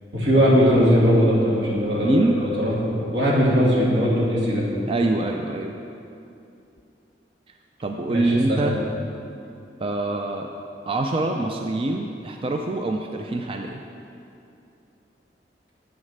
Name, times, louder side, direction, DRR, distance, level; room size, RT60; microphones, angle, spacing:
voice 1, 0.1-4.7 8.1-8.7, equal, 80° right, -5 dB, 2.4 m, -20 dB
voice 2, 2.0-2.3 4.9-5.7 7.8-8.8 9.8-10.5 10.9-13.8, right 2 dB, 30° right, 3 dB, 0.4 m, -24 dB
8.2 x 6.4 x 6.6 m, 2.7 s
head